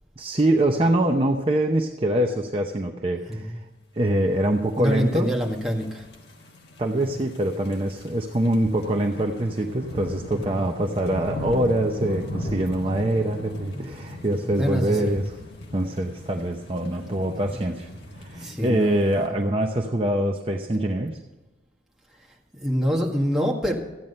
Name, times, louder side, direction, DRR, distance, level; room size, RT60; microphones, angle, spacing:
voice 1, 0.2-3.6 3.9-5.3 6.8-15.4 15.7-17.9 18.2-21.2, right 1 dB, 30° right, 2 dB, 0.7 m, -24 dB
voice 2, 4.8-6.0 7.0-7.2 10.3-10.6 13.7-13.9 14.3-15.2 18.4-19.0 22.6-23.7, equal, 5° right, -3 dB, 1.9 m, -26 dB
sound 1, 5.0-19.3, left 1 dB, 65° left, 1.6 m, -38 dB
14.5 x 9.2 x 5.4 m, 1.1 s
head